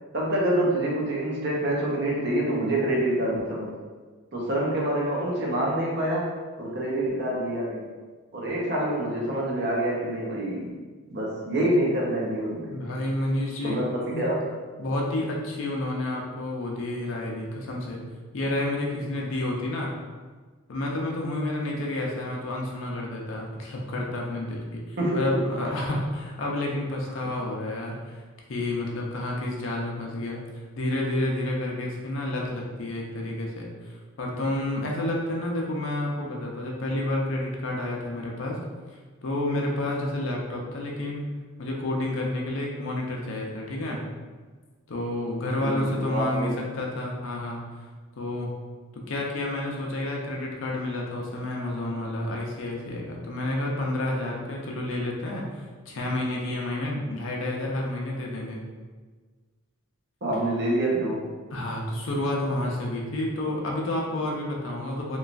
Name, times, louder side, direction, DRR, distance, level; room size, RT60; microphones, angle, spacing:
voice 1, 0.1-3.7 4.3-7.9 8.3-10.8 11.1-12.7 13.6-14.5 25.0-25.7 45.6-46.5 60.2-61.3, right 1 dB, 50° right, -3 dB, 0.6 m, -26 dB
voice 2, 12.7-13.8 14.1-14.2 14.8-18.0 18.3-19.9 20.7-38.6 39.2-41.3 41.6-44.0 44.9-47.8 48.2-48.5 48.9-58.6 61.5-65.2, left 1 dB, 60° left, -1 dB, 0.5 m, -30 dB
3.0 x 2.3 x 2.5 m, 1.4 s
head